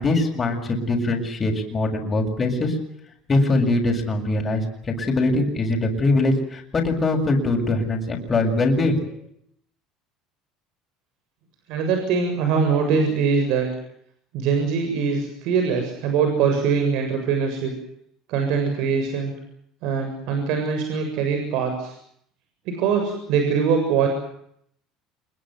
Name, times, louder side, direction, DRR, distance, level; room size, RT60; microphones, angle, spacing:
voice 1, 0.0-2.8 3.3-4.6 5.0-9.0, left 2 dB, 25° left, 2 dB, 7.4 m, -22 dB
voice 2, 11.7-13.7 14.3-17.7 18.3-19.3 19.8-22.0 22.7-24.1, right 6 dB, 65° right, 5 dB, 7.4 m, -22 dB
27.5 x 22.5 x 7.9 m, 0.71 s
cardioid pair, 130°, 0 cm